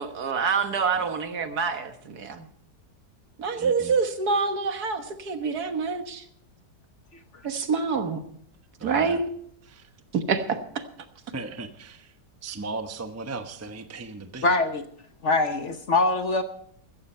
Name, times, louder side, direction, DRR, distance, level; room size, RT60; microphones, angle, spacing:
voice 1, 0.0-2.5 3.4-6.2 7.4-8.2 8.8-9.3 10.3-10.8, right 5 dB, 65° right, 8 dB, 1.8 m, -26 dB
voice 2, 3.5-3.9 8.8-9.2 9.6-9.9 11.3-12.1 12.4-14.5, right 3 dB, 10° right, 7 dB, 0.8 m, -37 dB
voice 3, 14.4-14.8 15.2-16.4, left 3 dB, 50° left, 8 dB, 1.1 m, -23 dB
15.0 x 15.0 x 4.4 m, 0.65 s
omnidirectional pair, 1.9 m